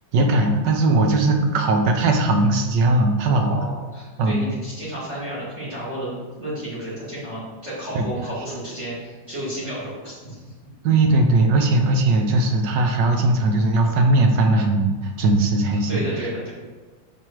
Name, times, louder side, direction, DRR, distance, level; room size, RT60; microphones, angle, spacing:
voice 1, 0.1-3.6 4.2-4.4 7.9-8.1 10.8-16.0, right 2 dB, 65° right, 3 dB, 1.4 m, -19 dB
voice 2, 3.2-10.4 15.9-16.5, right 1 dB, 35° right, -8 dB, 2.4 m, -32 dB
5.9 x 5.2 x 4.6 m, 1.3 s
omnidirectional pair, 2.2 m